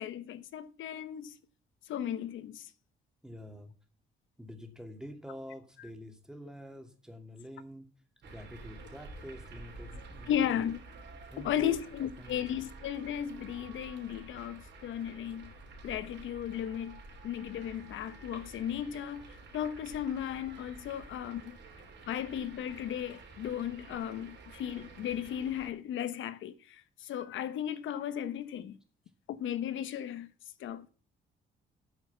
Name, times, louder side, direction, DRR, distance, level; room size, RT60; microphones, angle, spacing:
voice 1, 0.0-1.3 1.9-2.7 10.3-10.8 11.4-15.5 15.8-21.6 22.1-28.8 29.3-30.3 30.6-30.9, left 10 dB, 75° left, 1.0 m, -35 dB
voice 2, 3.2-3.7 4.4-7.9 8.2-10.6 11.3-11.8 12.2-12.7 20.9-21.2 21.5-22.1, equal, 5° right, 2.6 m, -47 dB
sound 1, 8.2-25.7, right 3 dB, 60° right, 3.4 m, -50 dB
9.2 x 7.1 x 7.1 m
cardioid pair, 90°, 20 cm